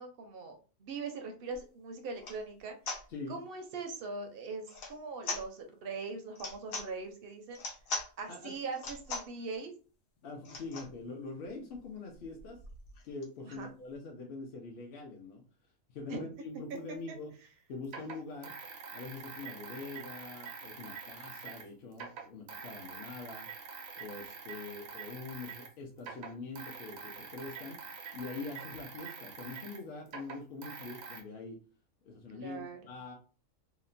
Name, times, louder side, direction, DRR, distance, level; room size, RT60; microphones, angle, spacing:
voice 1, 0.0-2.8 3.3-7.6 8.2-9.7 13.4-13.7 16.1-16.3 16.7-16.8 32.3-32.8, right 4 dB, 65° right, 5 dB, 0.6 m, -41 dB
sound 1, 1.5-1.6 2.1-2.4 2.9-3.0 4.7-5.0 5.2-5.5 6.3-6.9 7.5-8.1 8.7-9.3 10.4-10.9 11.5-11.6 11.7-11.9 12.1-13.6, left 3 dB, 85° left, 1.1 m, -40 dB
voice 2, 8.3-8.6 10.2-12.6 13.0-15.4 15.9-17.4 17.7-18.5 18.9-23.5 24.0-27.8 28.1-31.6 32.0-33.1, left 3 dB, 60° left, 1 dB, 0.6 m, -44 dB
sound 2, 16.8-16.9 17.8-21.7 21.9-25.7 26.0-31.2, right 6 dB, 90° right, 1.0 m, -46 dB
2.8 x 2.1 x 2.5 m, 0.37 s
omnidirectional pair, 1.4 m